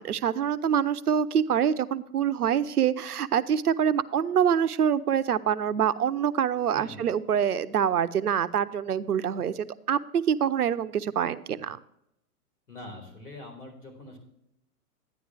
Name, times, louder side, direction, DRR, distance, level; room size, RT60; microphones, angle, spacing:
voice 1, 0.0-11.8, right 8 dB, 75° right, 14 dB, 0.7 m, -25 dB
voice 2, 6.7-7.1 12.7-14.2, left 1 dB, 75° left, 2 dB, 4.3 m, -43 dB
11.5 x 9.9 x 3.3 m, 0.77 s
figure-of-eight pair, 110°, 46 cm